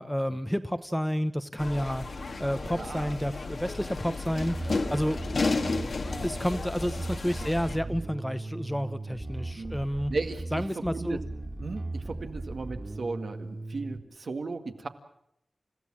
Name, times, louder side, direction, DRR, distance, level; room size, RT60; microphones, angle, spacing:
voice 1, 0.0-5.2 6.2-10.1 10.5-11.2, equal, 5° left, 11 dB, 1.0 m, -30 dB
sound 1, 1.6-7.8, left 3 dB, 65° left, 1.9 m, -33 dB
voice 2, 2.8-3.2 4.6-5.3 5.7-5.9 9.1-9.2 9.6-9.8 10.1-11.2 11.6-14.9, right 3 dB, 65° right, 6 dB, 2.0 m, -36 dB
Bass guitar, 4.4-14.0, right 2 dB, 25° right, 2.6 m, -38 dB
29.5 x 15.5 x 7.6 m, 0.76 s
wide cardioid pair, 95°, 0 cm